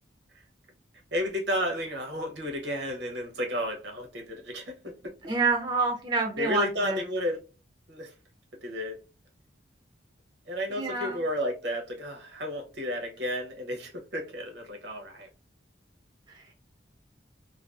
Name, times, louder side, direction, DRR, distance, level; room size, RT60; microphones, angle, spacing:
voice 1, 1.1-5.3 6.4-7.4 7.9-8.1 8.6-9.0 10.5-15.3, equal, 65° right, 0.7 m, -32 dB
voice 2, 5.3-7.0 10.7-11.2, right 3 dB, 25° right, 0.3 m, -27 dB
2.5 x 2.2 x 2.3 m
head